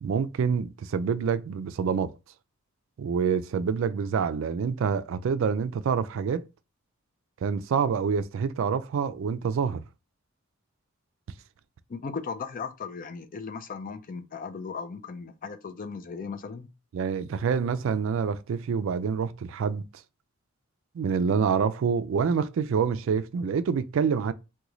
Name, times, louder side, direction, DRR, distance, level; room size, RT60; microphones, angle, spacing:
voice 1, 0.0-2.1 3.0-6.4 7.4-9.8 16.9-19.9 20.9-24.3, right 6 dB, 65° right, 0.3 m, -27 dB
voice 2, 11.9-16.7, left 5 dB, 40° left, 0.4 m, -37 dB
3.0 x 2.2 x 3.7 m
head